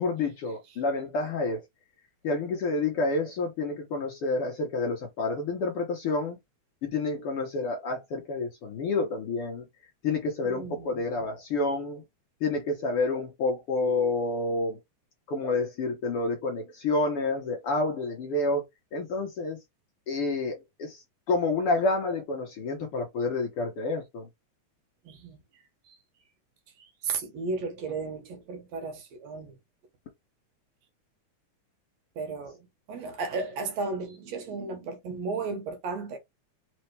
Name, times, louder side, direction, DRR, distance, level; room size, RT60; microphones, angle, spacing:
voice 1, 0.0-1.6 2.2-6.4 6.8-9.7 10.0-12.0 12.4-14.8 15.3-18.6 18.9-19.6 20.1-24.3, left 3 dB, 65° left, 1.5 m, -29 dB
voice 2, 10.4-11.0 25.0-25.4 25.9-26.0 26.8-29.6 32.2-36.2, right 4 dB, 70° right, 2.1 m, -34 dB
4.4 x 3.7 x 3.2 m
omnidirectional pair, 3.4 m